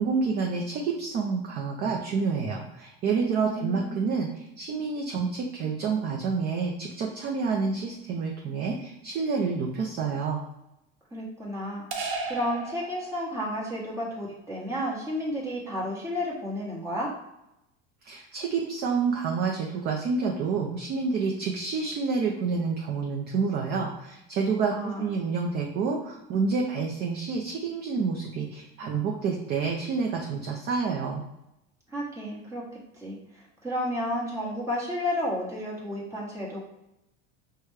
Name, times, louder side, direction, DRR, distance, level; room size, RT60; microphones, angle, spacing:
voice 1, 0.0-10.4 18.0-31.2, right 5 dB, 35° right, 0 dB, 0.4 m, -28 dB
voice 2, 3.4-4.0 11.1-12.0 12.3-17.1 24.7-25.3 31.9-32.6 32.9-36.6, left 1 dB, 10° right, -5 dB, 1.1 m, -32 dB
sound 1, 11.9-13.6, right 3 dB, 85° right, 0.9 m, -34 dB
4.9 x 2.2 x 3.2 m, 0.87 s
supercardioid pair, 145°, 30 cm